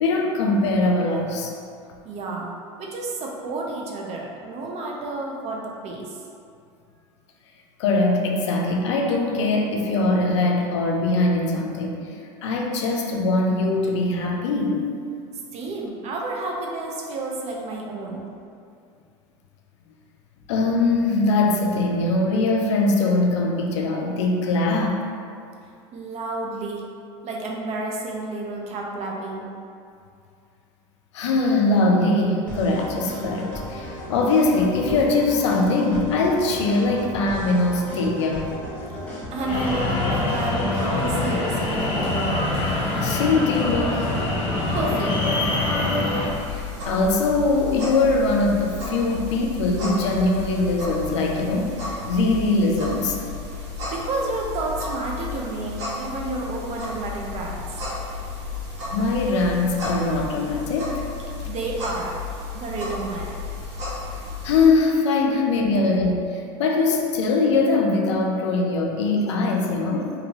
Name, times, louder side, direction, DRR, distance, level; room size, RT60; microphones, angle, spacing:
voice 1, 0.0-1.5 7.8-12.0 12.4-14.8 20.5-25.0 31.1-38.5 43.0-44.1 46.5-53.2 58.9-61.1 64.4-70.1, left 3 dB, 90° left, 1 dB, 0.4 m, -22 dB
voice 2, 2.0-2.5 2.8-6.2 15.5-18.3 25.9-26.9 27.2-29.5 39.3-42.5 44.7-46.0 53.9-57.7 61.4-62.2 62.5-63.4, right 2 dB, 50° right, -1 dB, 0.6 m, -30 dB
sound 1, 32.5-42.1, equal, 10° left, 1.1 m, -35 dB
sound 2, 39.5-46.3, left 2 dB, 40° left, 0.8 m, -24 dB
sound 3, 46.3-64.7, left 3 dB, 80° right, 1.2 m, -33 dB
2.7 x 2.7 x 2.9 m, 2.4 s
hypercardioid pair, 90°, 15 cm